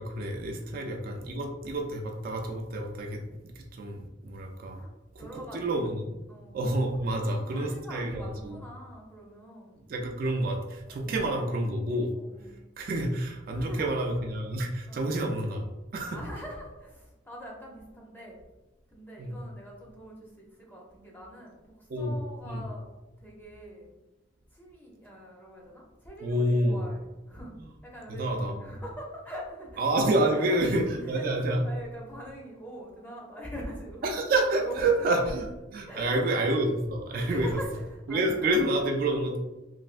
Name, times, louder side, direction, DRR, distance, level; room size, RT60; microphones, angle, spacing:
voice 1, 0.0-4.8 5.2-5.3 5.5-6.0 6.5-8.6 9.9-12.1 12.8-15.7 15.9-16.2 19.2-19.4 21.9-22.1 22.5-22.6 26.2-26.8 28.2-28.6 29.8-31.6 34.0-35.5 35.7-37.6 38.1-39.4, right 1 dB, 50° right, 1 dB, 0.3 m, -28 dB
voice 2, 5.2-5.9 6.3-6.6 7.1-9.9 10.8-11.3 12.1-12.5 13.5-14.0 14.9-15.1 16.1-18.4 18.9-22.8 23.2-23.9 24.5-27.5 27.8-29.9 30.2-30.6 31.0-34.1 34.6-35.4 35.9-36.6 37.2-38.5, right 1 dB, 10° left, -3 dB, 0.6 m, -43 dB
3.2 x 2.6 x 2.5 m, 1.1 s
head